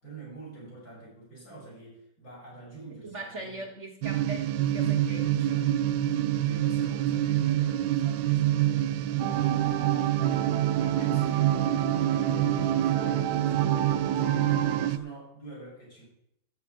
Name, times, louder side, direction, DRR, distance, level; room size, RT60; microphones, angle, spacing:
voice 1, 0.0-3.7 4.7-5.7 6.4-10.4 10.8-16.1, right 3 dB, 55° left, -6 dB, 6.5 m, -47 dB
voice 2, 3.0-5.7, right 2 dB, 50° right, 2 dB, 1.1 m, -40 dB
sound 1, 4.0-15.0, right 12 dB, 90° right, 1.3 m, -26 dB
sound 2, 9.2-14.9, right 8 dB, 70° right, 1.4 m, -32 dB
13.0 x 8.1 x 4.9 m, 0.77 s
omnidirectional pair, 2.0 m